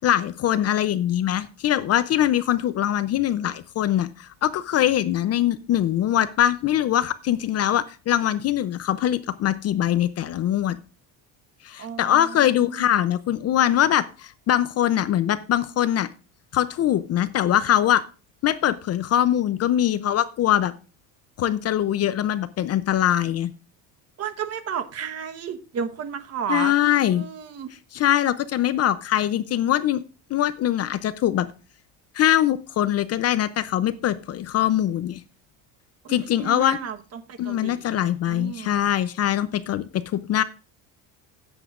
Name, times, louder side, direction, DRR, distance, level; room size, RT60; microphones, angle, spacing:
voice 1, 0.0-10.8 11.6-16.1 16.5-18.0 18.4-20.7 21.4-23.5 26.5-27.3 27.9-30.0 30.3-31.5 32.1-35.2 36.1-36.8 37.4-39.8 40.1-40.4, left 11 dB, 35° left, 0.5 m, -22 dB
voice 2, 11.8-12.8 24.2-26.7 27.0-27.7 36.0-38.0 38.3-38.7, right 7 dB, 35° right, 1.1 m, -33 dB
17.0 x 8.0 x 2.4 m
cardioid pair, 145°, 41 cm